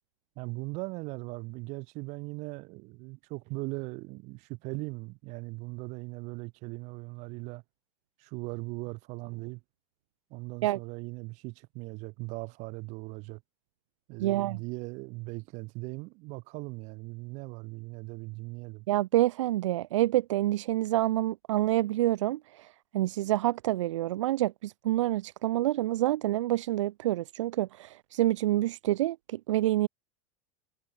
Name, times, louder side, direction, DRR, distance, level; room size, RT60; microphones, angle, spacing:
voice 1, 0.4-7.6 8.2-9.6 10.3-13.4 14.1-18.9, right 26 dB, 50° right, 8.0 m, -39 dB
voice 2, 14.2-14.6 18.9-29.9, right 15 dB, 90° right, 1.4 m, -27 dB
supercardioid pair, 150°, 15 cm